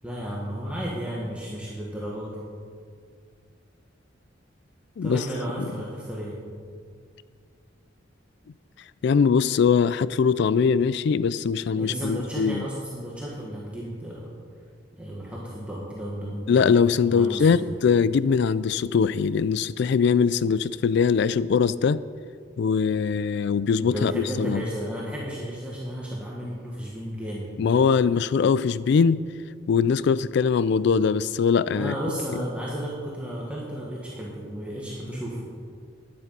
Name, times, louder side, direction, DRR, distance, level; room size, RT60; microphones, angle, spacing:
voice 1, 0.0-2.4 5.0-6.4 11.7-14.3 15.0-17.7 23.8-27.5 31.7-35.4, equal, 5° right, -5 dB, 1.5 m, -33 dB
voice 2, 9.0-12.6 16.5-22.0 22.6-24.6 27.6-29.2 29.7-31.9, left 6 dB, 65° left, 17 dB, 0.3 m, -22 dB
12.5 x 10.5 x 5.5 m, 2.1 s
head